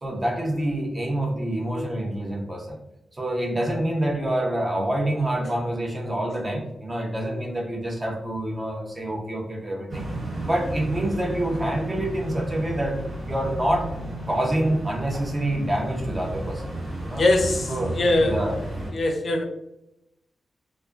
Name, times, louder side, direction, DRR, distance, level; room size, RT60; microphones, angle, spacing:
voice 1, 0.0-2.8 3.1-10.1 10.4-16.6 17.0-17.2 17.7-18.6, right 1 dB, 30° right, 0 dB, 0.6 m, -27 dB
sound 1, 9.9-18.9, right 1 dB, 55° right, 1.0 m, -33 dB
voice 2, 17.2-18.4 18.9-19.4, left 2 dB, 60° left, 3 dB, 0.4 m, -22 dB
2.4 x 2.2 x 2.4 m, 0.85 s
cardioid pair, 90°, 0 cm